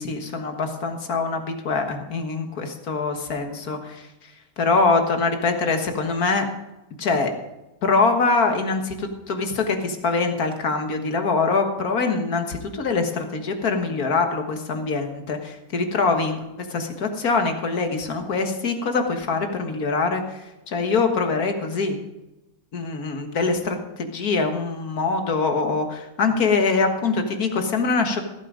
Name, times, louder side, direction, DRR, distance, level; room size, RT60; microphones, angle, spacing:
voice 1, 0.0-4.1 4.6-6.5 7.0-7.3 7.8-22.0 22.7-28.3, left 4 dB, 80° left, 5 dB, 2.0 m, -24 dB
15.0 x 8.9 x 5.1 m, 0.99 s
omnidirectional pair, 1.6 m